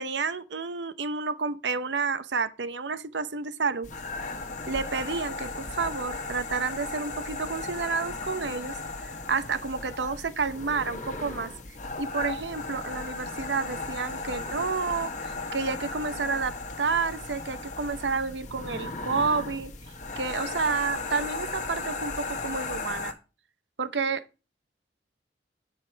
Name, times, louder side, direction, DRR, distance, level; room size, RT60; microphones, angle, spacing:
voice 1, 0.0-3.9 4.7-8.7 9.0-11.5 12.0-19.7 20.2-23.1 23.8-24.2, right 4 dB, 75° right, 0.8 m, -30 dB
sound 1, 3.8-23.1, left 3 dB, 45° left, 1.3 m, -36 dB
9.6 x 5.5 x 4.5 m
head